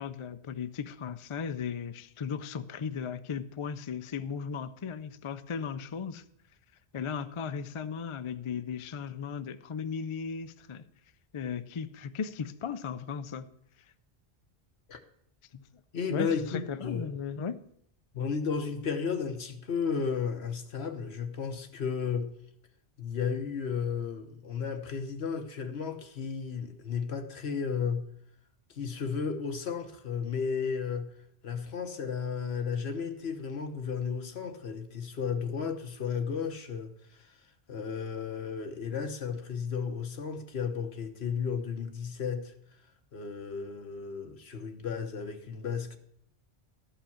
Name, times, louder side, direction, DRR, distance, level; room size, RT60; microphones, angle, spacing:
voice 1, 0.0-6.2 6.9-10.9 11.3-13.5 15.5-15.6 16.1-17.6, left 6 dB, 45° left, 0.4 m, -36 dB
voice 2, 15.9-17.1 18.1-22.3 23.0-28.1 28.7-31.1 31.4-37.4 37.7-42.5 43.1-46.0, left 6 dB, 70° left, 1.3 m, -33 dB
13.0 x 5.7 x 7.0 m
omnidirectional pair, 1.1 m